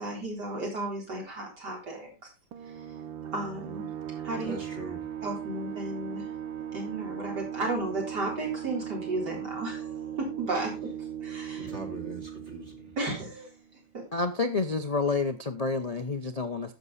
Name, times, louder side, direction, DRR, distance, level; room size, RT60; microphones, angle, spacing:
voice 1, 0.0-2.3 2.7-2.9 3.3-3.9 4.2-4.6 5.2-6.3 6.7-10.9 11.2-11.7 13.0-13.5 13.9-14.0, right 2 dB, 60° right, 4.5 m, -34 dB
sound 1, 2.5-13.8, right 9 dB, 90° right, 1.6 m, -38 dB
voice 2, 4.4-5.0 11.5-12.9, right 2 dB, 40° right, 2.6 m, -41 dB
voice 3, 14.1-16.7, left 3 dB, 70° left, 0.3 m, -29 dB
10.5 x 7.7 x 4.1 m
omnidirectional pair, 2.0 m